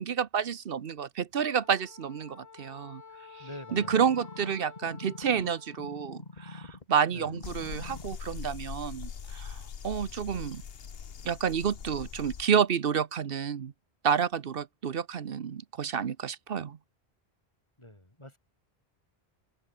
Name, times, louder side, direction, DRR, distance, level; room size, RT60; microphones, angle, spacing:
voice 1, 0.0-3.0 3.3-10.6 11.2-13.7 14.0-16.8, right 7 dB, 65° right, 1.1 m, -30 dB
Wind instrument woodwind instrument, 1.5-6.0, left 5 dB, 85° left, 1.9 m, -51 dB
voice 2, 3.4-4.0 7.1-7.3 17.8-18.4, left 1 dB, 25° left, 4.3 m, -46 dB
sound 1, 3.7-6.8 7.2-8.2 8.7-8.8, left 3 dB, 45° left, 1.8 m, -45 dB
sound 2, 7.4-12.5, left 7 dB, 70° left, 1.2 m, -41 dB
omnidirectional pair, 1.1 m